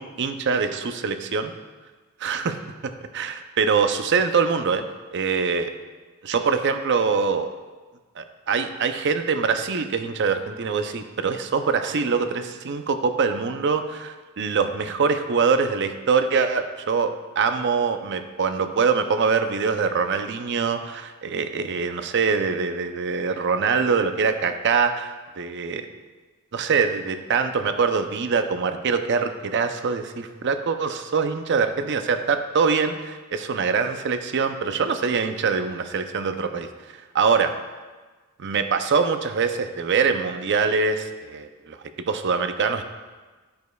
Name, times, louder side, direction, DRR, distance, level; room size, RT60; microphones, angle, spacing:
voice 1, 0.0-1.5 2.2-2.6 2.8-4.8 5.1-5.7 6.2-7.5 8.2-25.8 26.5-36.7 36.9-37.5 38.4-41.8 42.1-42.8, right 5 dB, 55° right, 8 dB, 0.5 m, -24 dB
13.5 x 5.2 x 2.3 m, 1.3 s
head